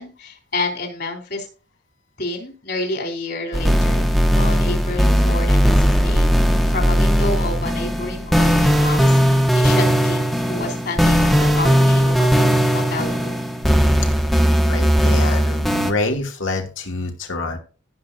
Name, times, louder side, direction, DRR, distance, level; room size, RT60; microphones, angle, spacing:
voice 1, 0.0-1.5 2.2-6.3 6.7-13.4, left 2 dB, 55° left, 2 dB, 3.8 m, -29 dB
sound 1, 3.5-15.9, equal, ahead, 1.1 m, -17 dB
voice 2, 14.7-17.6, left 2 dB, 80° left, 2 dB, 2.6 m, -26 dB
18.0 x 6.2 x 2.7 m, 0.36 s
head